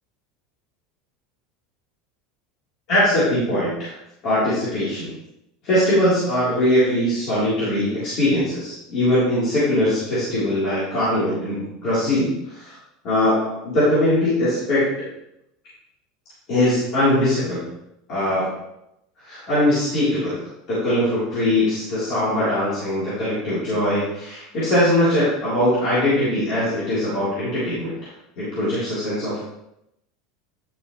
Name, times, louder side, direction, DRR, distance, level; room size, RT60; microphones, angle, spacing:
voice 1, 2.9-3.9 4.2-5.1 5.6-12.8 13.0-14.9 16.5-17.7 18.1-18.5 19.2-20.4 20.7-28.1 28.4-29.5, left 1 dB, 35° left, -11 dB, 3.6 m, -21 dB
10.0 x 7.1 x 3.2 m, 0.84 s
supercardioid pair, 175°, 0 cm